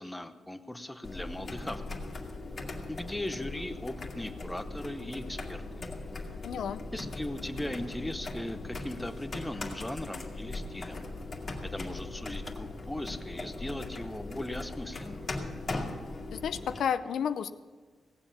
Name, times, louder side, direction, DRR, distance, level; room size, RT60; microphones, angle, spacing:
voice 1, 0.0-2.0 2.9-5.8 6.9-11.0 11.6-15.2, left 1 dB, 5° left, 8 dB, 0.8 m, -38 dB
sound 1, 1.0-16.8, left 2 dB, 40° left, 2.0 m, -39 dB
voice 2, 6.4-6.8 16.3-17.5, left 8 dB, 80° left, 11 dB, 0.5 m, -31 dB
17.5 x 7.8 x 7.2 m, 1.4 s
cardioid pair, 115°, 0 cm